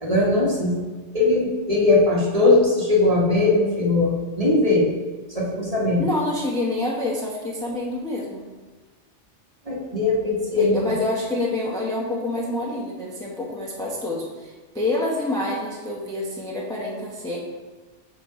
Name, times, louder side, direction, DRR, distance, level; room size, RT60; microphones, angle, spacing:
voice 1, 0.0-0.8 1.1-4.9 5.3-6.0 9.7-10.8, left 2 dB, 30° right, -4 dB, 1.2 m, -20 dB
voice 2, 6.0-8.4 10.6-17.4, left 2 dB, 5° left, -4 dB, 0.7 m, -27 dB
6.5 x 3.9 x 4.6 m, 1.3 s
omnidirectional pair, 1.2 m